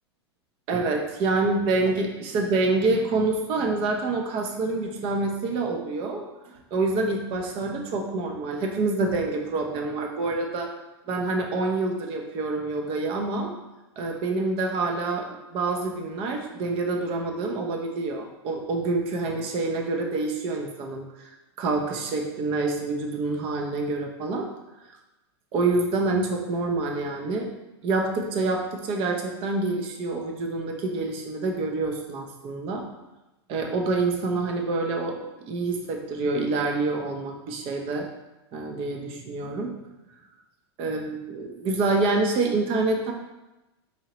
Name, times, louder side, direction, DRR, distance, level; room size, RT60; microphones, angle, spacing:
voice 1, 0.7-6.3 6.7-10.7 11.1-13.5 14.0-21.3 21.6-24.5 25.5-27.5 27.8-32.8 33.5-35.1 35.5-38.1 38.5-39.8 40.8-43.1, right 3 dB, 40° right, 2 dB, 0.7 m, -27 dB
4.2 x 2.8 x 3.0 m, 1.0 s
hypercardioid pair, 110°, 14 cm